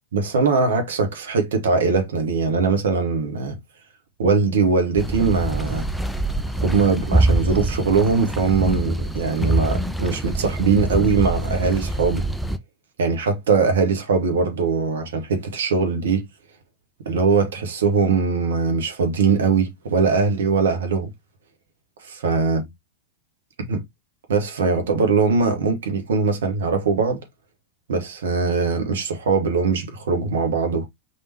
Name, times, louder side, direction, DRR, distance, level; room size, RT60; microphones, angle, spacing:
voice 1, 0.1-3.6 4.2-5.9 6.6-12.2 13.0-16.3 17.0-21.1 22.1-22.6 23.6-23.8 24.3-27.2 27.9-30.9, right 4 dB, 60° right, 1.3 m, -21 dB
sound 1, 5.0-12.6, right 1 dB, ahead, 0.5 m, -24 dB
5.0 x 3.6 x 2.9 m
figure-of-eight pair, 90°, 0 cm